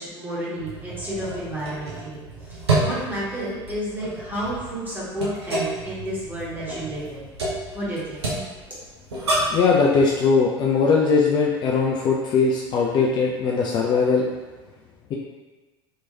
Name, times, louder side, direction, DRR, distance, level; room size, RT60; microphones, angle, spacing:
voice 1, 0.0-7.3 7.7-8.2 8.7-8.8, equal, 15° right, -8 dB, 1.4 m, -31 dB
sound 1, 0.6-9.7, right 2 dB, 75° right, 0.7 m, -29 dB
voice 2, 9.5-14.3, left 4 dB, 35° left, -2 dB, 0.4 m, -20 dB
3.2 x 3.0 x 2.7 m, 1.3 s
figure-of-eight pair, 70°, 14 cm